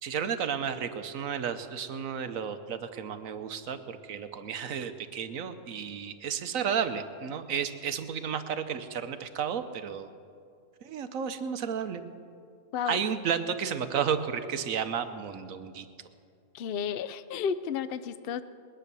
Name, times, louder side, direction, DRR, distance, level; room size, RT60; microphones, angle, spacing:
voice 1, 0.0-10.1 10.8-12.0 12.9-15.9, right 7 dB, 65° right, 10 dB, 1.1 m, -32 dB
voice 2, 16.5-18.4, left 7 dB, 80° left, 13 dB, 0.5 m, -32 dB
20.5 x 10.0 x 6.8 m, 2.4 s
omnidirectional pair, 1.6 m